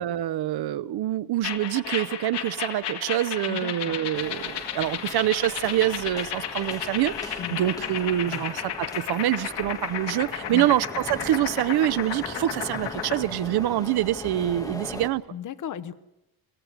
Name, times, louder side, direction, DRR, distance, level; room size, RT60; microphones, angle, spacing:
voice 1, 0.0-15.2, right 13 dB, 70° right, 0.7 m, -26 dB
sound 1, 1.4-13.2, left 9 dB, 80° left, 2.1 m, -33 dB
voice 2, 3.5-4.0 7.4-7.8 8.2-8.4 10.5-10.7 15.3-15.9, left 9 dB, 50° left, 1.0 m, -36 dB
sound 2, 4.1-15.1, left 1 dB, 10° left, 1.5 m, -40 dB
23.5 x 15.5 x 8.1 m
cardioid pair, 150°, 41 cm